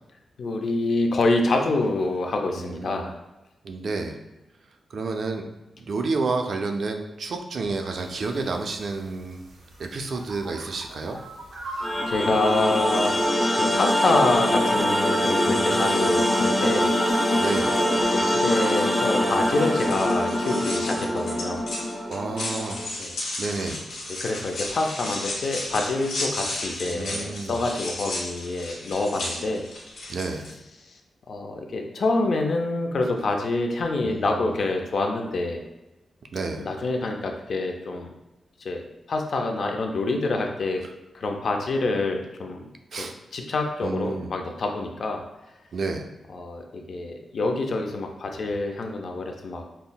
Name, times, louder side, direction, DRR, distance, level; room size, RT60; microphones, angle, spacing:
voice 1, 0.4-3.2 12.1-13.3 13.5-16.9 17.6-21.6 23.0-23.1 24.2-29.6 31.3-35.6 36.6-38.1 38.6-38.8 39.1-40.8 41.1-42.6 43.0-45.2 46.3-49.6, left 2 dB, 50° left, 3 dB, 0.4 m, -26 dB
voice 2, 2.6-3.1 3.6-4.2 4.9-5.5 5.8-9.4 9.8-11.2 15.5-16.1 17.3-17.8 22.1-22.8 23.4-23.8 26.9-27.6 30.1-30.5 34.0-34.5 36.3-36.7 42.9-43.2 43.8-44.3 45.7-46.1, right 3 dB, 55° right, 5 dB, 0.3 m, -30 dB
sound 1, 7.9-13.3, right 2 dB, 80° right, 0.7 m, -40 dB
sound 2, 11.8-22.9, equal, 5° left, 0.6 m, -24 dB
sound 3, 19.4-30.5, left 2 dB, 85° left, 1.1 m, -34 dB
5.4 x 2.0 x 2.2 m, 0.98 s
wide cardioid pair, 165°, 0 cm